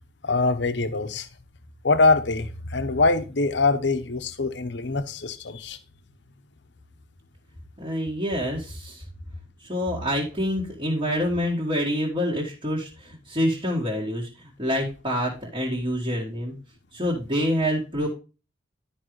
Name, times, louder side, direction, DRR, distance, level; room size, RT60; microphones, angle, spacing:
voice 1, 0.2-1.3 1.8-5.8, left 3 dB, 70° left, 0.9 m, -23 dB
voice 2, 7.8-9.0 9.6-16.5 16.9-18.1, equal, 25° right, 1.8 m, -27 dB
11.5 x 5.2 x 3.1 m
head